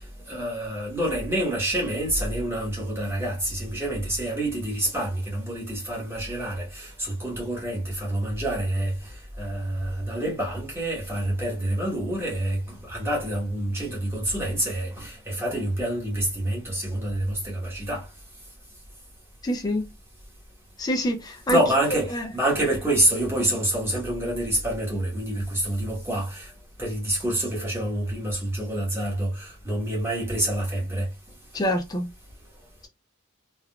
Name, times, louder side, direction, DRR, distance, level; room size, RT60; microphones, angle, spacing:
voice 1, 0.3-18.1 21.5-26.5 26.8-31.1, right 1 dB, 10° right, 1.1 m, -27 dB
voice 2, 19.4-19.9 20.8-21.6 22.1-22.3 31.5-32.1, equal, 20° left, 0.3 m, -26 dB
3.5 x 2.3 x 2.2 m
head